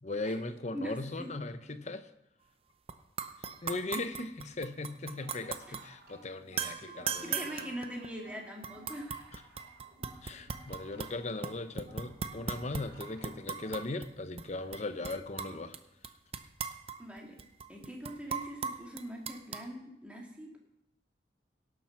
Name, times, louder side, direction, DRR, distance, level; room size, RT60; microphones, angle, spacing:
voice 1, 0.0-2.1 3.6-7.6 9.3-9.4 10.2-15.8, left 2 dB, 40° left, 11 dB, 0.7 m, -38 dB
voice 2, 0.7-1.3 5.7-5.8 7.2-9.3 17.0-17.4 17.7-20.6, equal, 5° right, -1 dB, 2.2 m, -42 dB
sound 1, 2.9-3.0 3.2-5.8 6.6-8.2 8.6-11.1 11.4-14.1 14.4-14.5 14.7-15.8 16.0-19.7, right 6 dB, 30° right, 0.6 m, -38 dB
sound 2, 5.0-13.9, right 1 dB, 60° right, 4.0 m, -57 dB
17.5 x 7.3 x 5.9 m, 0.83 s
head